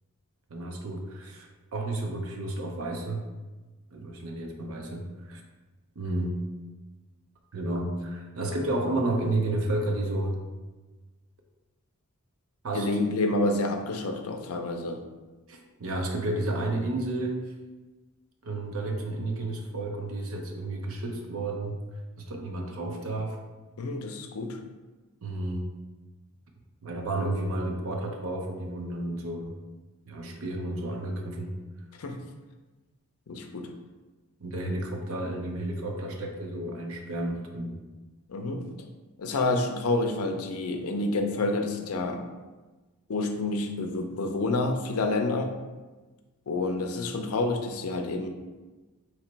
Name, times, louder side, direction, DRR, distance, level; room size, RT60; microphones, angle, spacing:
voice 1, 0.5-3.2 3.9-5.4 6.0-6.4 7.5-10.4 12.6-12.9 15.5-17.5 18.4-21.8 22.2-23.4 25.2-25.7 26.8-29.5 30.1-31.5 34.4-37.7, right 2 dB, 70° right, 2 dB, 0.6 m, -31 dB
voice 2, 12.7-15.0 23.8-24.6 32.0-32.2 33.3-33.7 38.3-38.7 39.2-42.2 43.1-45.6 46.5-48.3, left 2 dB, 85° left, 5 dB, 0.5 m, -28 dB
3.1 x 2.9 x 4.5 m, 1.2 s
head